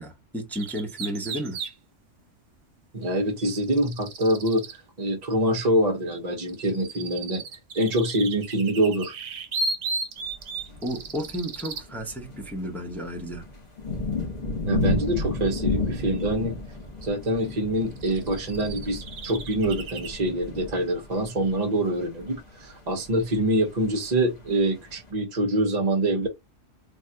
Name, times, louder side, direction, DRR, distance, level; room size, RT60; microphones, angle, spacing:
voice 1, 0.0-1.6 10.8-13.4, equal, ahead, 0.5 m, -32 dB
sound 1, 0.5-1.7 3.4-4.8 6.1-11.9 16.2-16.3 17.4-17.5 17.9-20.1, right 3 dB, 70° right, 1.0 m, -35 dB
voice 2, 2.9-7.4 7.7-9.1 14.7-16.5 17.0-26.3, right 1 dB, 40° right, 0.8 m, -25 dB
sound 2, 10.3-25.1, left 3 dB, 35° left, 1.1 m, -33 dB
3.5 x 2.3 x 2.6 m
omnidirectional pair, 1.3 m